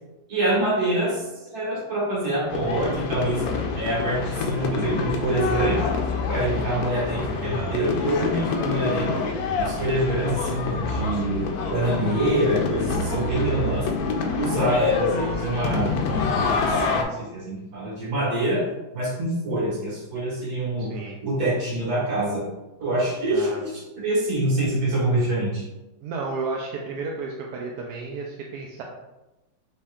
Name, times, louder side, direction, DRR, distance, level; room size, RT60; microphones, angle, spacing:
voice 1, 0.3-3.5 3.8-5.9 6.3-9.1 9.6-13.9 14.3-16.0 16.4-18.7 18.9-20.9 21.2-22.5 22.8-25.6, right 1 dB, 55° right, -5 dB, 1.9 m, -25 dB
sound 1, 2.5-17.0, left 4 dB, 70° left, 0.9 m, -26 dB
voice 2, 8.0-8.5 20.8-21.2 23.3-23.6 26.0-28.8, right 4 dB, 75° right, -1 dB, 1.0 m, -33 dB
5.6 x 3.3 x 2.4 m, 1.0 s
omnidirectional pair, 2.0 m